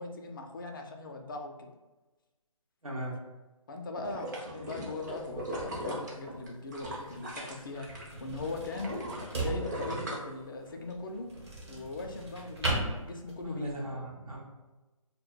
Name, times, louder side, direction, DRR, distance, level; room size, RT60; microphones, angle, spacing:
voice 1, 0.0-1.7 3.7-7.9 8.2-9.0 9.3-11.3 11.7-13.8, left 3 dB, 40° left, 3 dB, 0.4 m, -40 dB
voice 2, 2.8-3.2 13.4-14.4, right 1 dB, 80° right, -4 dB, 0.8 m, -38 dB
sound 1, 4.0-8.1 8.4-10.9 11.3-11.4, equal, 30° right, 0.5 m, -39 dB
sound 2, 5.0-13.7, right 2 dB, 50° right, 1.0 m, -39 dB
2.2 x 2.0 x 3.7 m, 1.1 s
figure-of-eight pair, 155°, 18 cm